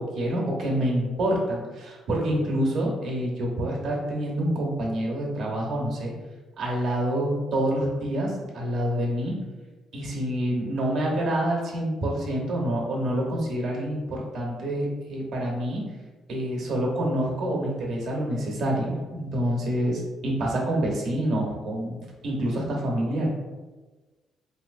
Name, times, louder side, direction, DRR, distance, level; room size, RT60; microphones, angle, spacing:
voice 1, 0.0-6.1 6.6-9.3 9.9-15.8 16.3-22.0 22.2-23.3, right 1 dB, 55° right, -1 dB, 0.8 m, -27 dB
3.2 x 2.8 x 2.4 m, 1.2 s
cardioid pair, 160°, 0 cm